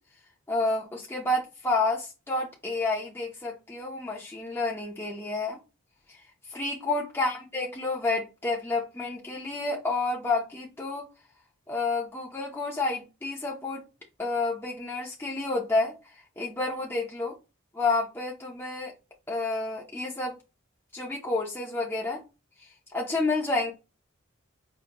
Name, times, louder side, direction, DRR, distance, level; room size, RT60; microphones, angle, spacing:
voice 1, 0.5-5.6 6.5-11.1 11.7-13.8 14.2-15.9 16.4-17.3 17.7-18.9 19.3-20.4 20.9-22.2 22.9-23.7, left 2 dB, 10° left, 0.7 m, -29 dB
5.1 x 2.7 x 2.9 m
head